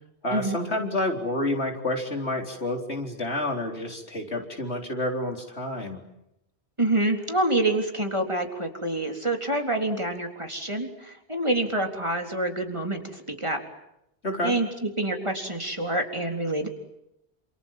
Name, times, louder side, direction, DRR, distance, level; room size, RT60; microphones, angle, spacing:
voice 1, 0.2-6.0 14.2-14.5, left 1 dB, 85° left, 3 dB, 4.4 m, -29 dB
voice 2, 6.8-13.6 14.4-16.7, right 2 dB, 25° right, 3 dB, 3.8 m, -27 dB
29.0 x 27.5 x 7.5 m, 0.84 s
omnidirectional pair, 1.1 m